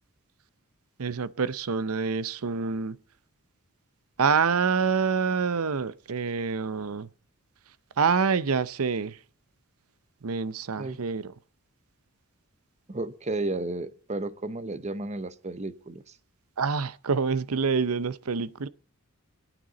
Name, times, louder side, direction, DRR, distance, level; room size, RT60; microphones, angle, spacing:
voice 1, 1.0-3.0 4.2-7.1 8.0-9.2 10.2-11.3 16.6-18.7, right 5 dB, 75° right, 0.7 m, -26 dB
voice 2, 12.9-16.2, right 2 dB, 30° right, 0.8 m, -33 dB
22.5 x 9.1 x 4.0 m
head